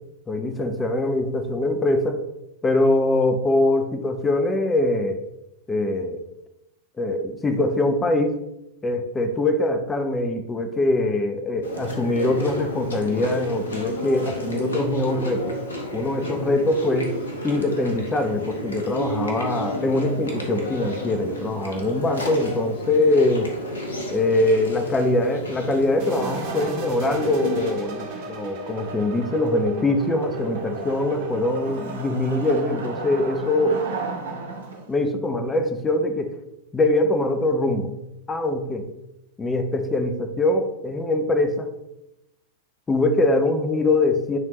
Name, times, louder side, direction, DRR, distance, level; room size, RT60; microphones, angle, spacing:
voice 1, 0.3-2.2 2.6-5.2 5.7-6.2 7.0-8.4 8.8-15.5 15.9-17.2 17.4-23.5 24.1-33.8 34.9-36.3 36.7-37.9 38.3-38.9 39.4-41.7 42.9-44.4, left 2 dB, 15° left, 6 dB, 0.7 m, -23 dB
Chewing mastication, 11.6-27.7, left 1 dB, 70° left, 1.1 m, -32 dB
sound 1, 26.0-32.0, right 4 dB, 45° right, 1.3 m, -37 dB
Wood, 26.1-35.0, right 4 dB, 65° right, 0.9 m, -36 dB
9.2 x 3.6 x 3.0 m, 0.87 s
figure-of-eight pair, 90°, 0 cm